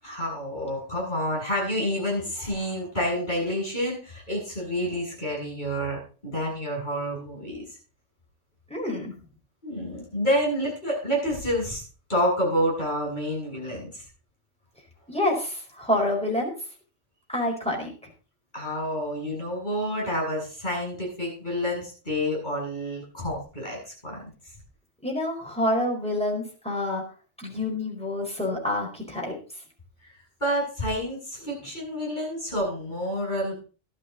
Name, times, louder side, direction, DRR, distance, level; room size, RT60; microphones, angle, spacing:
voice 1, 0.0-7.8 9.6-11.8 12.1-14.0 18.5-24.2 30.0-30.1 30.4-33.6, equal, 40° left, -3 dB, 8.1 m, -28 dB
voice 2, 8.7-9.1 15.1-16.5 17.3-17.9 25.0-27.0 27.4-29.4, left 1 dB, 5° left, -1 dB, 4.7 m, -27 dB
12.5 x 12.0 x 3.9 m, 0.37 s
omnidirectional pair, 1.2 m